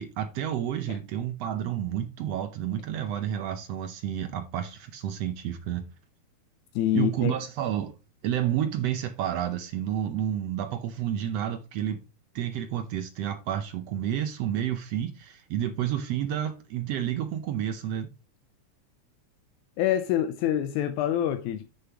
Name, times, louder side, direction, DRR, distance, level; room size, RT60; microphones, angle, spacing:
voice 1, 0.0-5.8 6.9-8.0 8.2-12.0 12.3-18.1, right 10 dB, 75° right, 1.6 m, -30 dB
voice 2, 6.8-7.3 19.8-21.7, left 12 dB, 85° left, 2.0 m, -26 dB
9.1 x 6.7 x 2.9 m
omnidirectional pair, 3.4 m